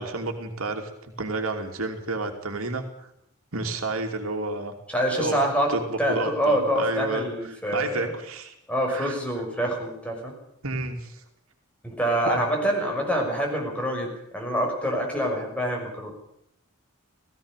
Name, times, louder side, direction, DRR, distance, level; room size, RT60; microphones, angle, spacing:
voice 1, 0.0-3.1 3.5-4.7 5.2-5.4 5.7-8.5 8.9-9.2 10.6-11.2 12.3-12.4, right 3 dB, 75° right, 4 dB, 2.9 m, -31 dB
voice 2, 4.9-8.1 8.7-10.4 11.8-16.1, equal, 5° left, 1 dB, 6.2 m, -26 dB
17.5 x 17.0 x 9.1 m, 0.73 s
head